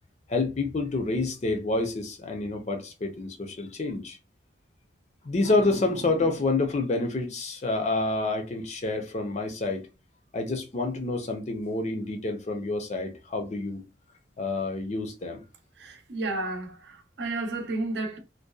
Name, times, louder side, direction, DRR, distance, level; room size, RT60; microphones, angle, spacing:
voice 1, 0.3-4.2 5.2-9.9 10.3-13.8 14.4-15.4, left 2 dB, 35° left, 0.5 m, -28 dB
voice 2, 15.7-18.2, right 2 dB, 60° right, 0.6 m, -32 dB
2.6 x 2.1 x 2.3 m
head